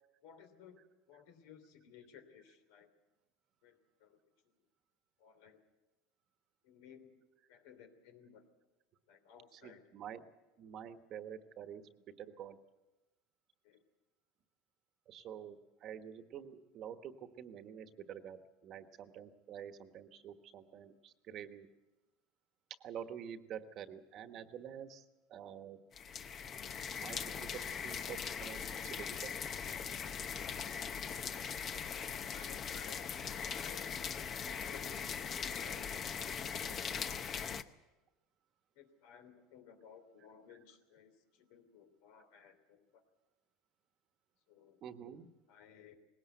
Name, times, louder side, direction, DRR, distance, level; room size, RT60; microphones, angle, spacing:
voice 1, 0.2-2.9 3.6-4.2 4.4-4.5 5.2-5.6 6.6-7.2 7.5-8.4 9.1-9.8 13.6-13.8 32.0-33.0 33.4-35.9 36.3-37.3 38.7-43.0 44.5-44.8 45.5-46.0, left 7 dB, 75° left, 8 dB, 3.1 m, -58 dB
voice 2, 9.5-10.2 10.6-11.8 12.2-12.6 15.1-21.7 22.8-25.0 25.3-25.8 27.0-29.3 44.8-45.3, right 9 dB, 45° right, 9 dB, 1.3 m, -48 dB
sound 1, 25.9-37.6, left 7 dB, 30° left, 0.8 m, -40 dB
20.0 x 17.5 x 8.0 m, 1.1 s
supercardioid pair, 135°, 0 cm